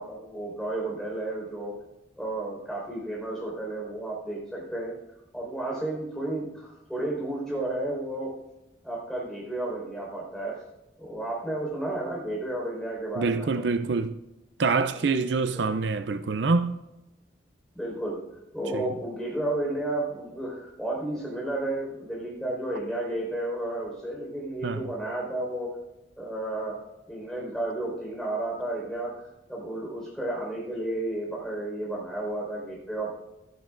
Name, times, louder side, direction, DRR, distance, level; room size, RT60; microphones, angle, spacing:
voice 1, 0.0-1.8 2.2-4.9 5.3-8.3 8.8-10.6 11.0-13.6 14.9-15.0 15.5-15.7 17.7-18.2 18.5-25.8 26.2-26.8 27.1-29.2 29.5-33.1, right 1 dB, 5° left, 4.5 m, -32 dB
voice 2, 13.2-14.2 14.6-16.8 18.7-18.9 24.6-24.8, right 4 dB, 65° right, 0.5 m, -26 dB
17.0 x 12.5 x 2.5 m
head